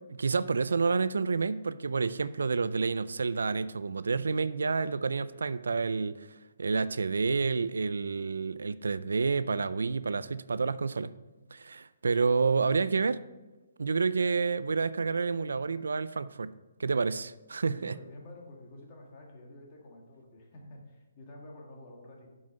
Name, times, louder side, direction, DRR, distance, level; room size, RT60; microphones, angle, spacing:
voice 1, 0.1-6.3 6.6-11.1 11.5-13.2 13.8-16.5 16.8-18.0, right 4 dB, 90° right, 16 dB, 0.4 m, -29 dB
voice 2, 17.7-22.3, left 1 dB, 30° left, -1 dB, 1.8 m, -49 dB
7.7 x 5.5 x 5.3 m, 1.1 s
hypercardioid pair, 160°, 0 cm